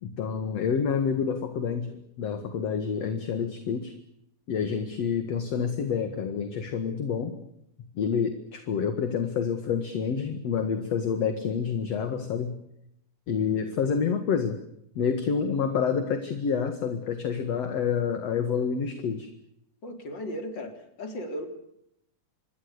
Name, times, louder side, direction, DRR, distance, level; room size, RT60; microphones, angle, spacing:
voice 1, 0.0-3.9 4.5-7.4 7.9-12.5 13.3-14.6 15.0-19.3, left 6 dB, 55° left, 8 dB, 2.8 m, -28 dB
voice 2, 19.8-21.5, equal, 35° left, 6 dB, 4.3 m, -36 dB
27.0 x 21.5 x 6.8 m, 0.77 s
omnidirectional pair, 3.7 m